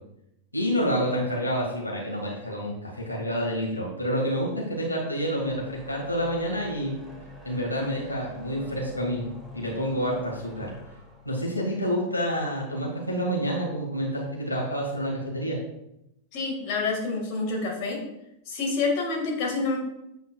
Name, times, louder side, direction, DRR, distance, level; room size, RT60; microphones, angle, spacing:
voice 1, 0.5-6.9 7.4-9.2 9.5-10.7 11.3-15.6, equal, 85° left, -3 dB, 2.0 m, -28 dB
sound 1, 5.2-12.6, left 1 dB, 5° right, 2.5 m, -47 dB
voice 2, 16.3-18.0 18.5-19.8, left 3 dB, 45° left, -1 dB, 1.9 m, -27 dB
8.2 x 7.9 x 2.4 m, 0.84 s
figure-of-eight pair, 90°, 0 cm